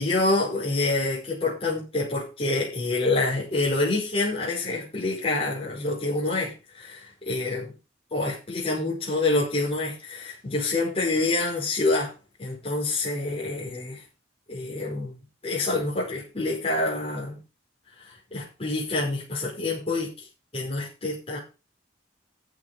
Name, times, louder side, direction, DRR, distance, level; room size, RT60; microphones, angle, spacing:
voice 1, 0.0-7.7 8.1-12.1 12.4-14.0 14.5-15.1 15.4-17.4 18.0-20.1 20.5-21.4, left 2 dB, 30° left, -5 dB, 5.2 m, -27 dB
15.0 x 6.4 x 5.5 m, 0.30 s
head